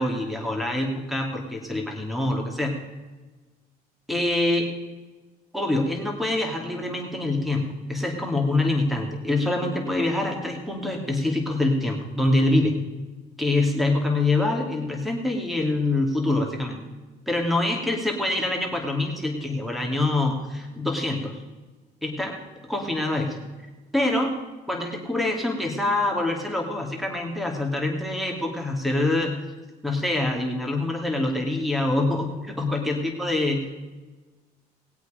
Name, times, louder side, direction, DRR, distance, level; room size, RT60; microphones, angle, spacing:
voice 1, 0.0-2.7 4.1-4.7 5.5-12.7 13.4-16.8 17.3-21.4 22.0-22.4 22.7-23.5 23.9-24.3 24.7-29.4 29.8-33.8, left 2 dB, ahead, 1 dB, 2.8 m, -25 dB
20.5 x 8.2 x 5.2 m, 1.2 s
cardioid pair, 110°, 17 cm